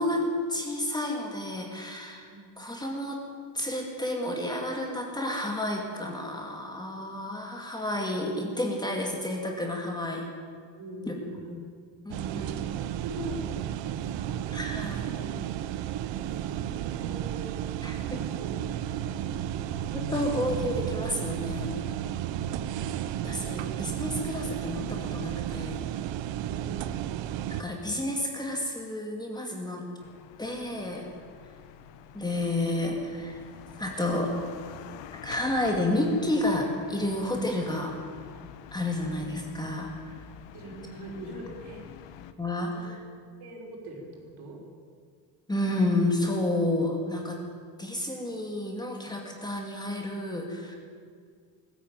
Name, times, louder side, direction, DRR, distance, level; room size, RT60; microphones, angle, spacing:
voice 1, 0.0-2.3 2.6-3.2 3.5-10.3 11.1-11.2 12.0-12.7 14.5-15.1 17.8-18.2 19.9-21.7 23.2-25.8 27.5-29.8 30.4-31.1 32.1-33.4 33.8-34.3 35.2-37.9 38.7-40.2 42.4-43.0 45.5-47.4 47.8-50.8, left 1 dB, 10° left, 1 dB, 2.2 m, -30 dB
voice 2, 2.3-2.6 10.8-11.5 12.3-14.4 15.0-15.5 16.3-17.5 18.0-18.6 19.1-19.2 19.5-19.8 23.5-23.7 26.5-26.9 39.0-39.3 40.5-41.8 42.7-42.9 43.4-44.6, right 1 dB, 60° right, 0 dB, 5.4 m, -43 dB
sound 1, 12.1-27.6, right 11 dB, 80° right, 0.9 m, -33 dB
sound 2, 30.0-42.3, left 9 dB, 75° left, 1.4 m, -47 dB
20.5 x 14.5 x 9.0 m, 2.1 s
cardioid pair, 175°, 44 cm